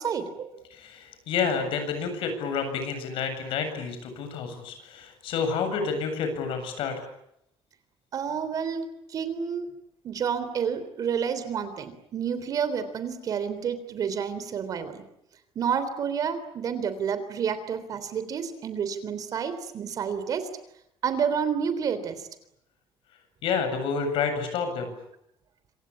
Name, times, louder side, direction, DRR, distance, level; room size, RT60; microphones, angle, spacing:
voice 1, 0.0-0.6 8.1-9.7 10.0-15.0 15.5-20.5 21.0-22.3, right 7 dB, 40° right, 12 dB, 3.4 m, -29 dB
voice 2, 0.7-7.0 23.4-24.9, left 5 dB, 65° left, 8 dB, 7.7 m, -29 dB
27.0 x 26.0 x 8.5 m, 0.78 s
cardioid pair, 180°, 9 cm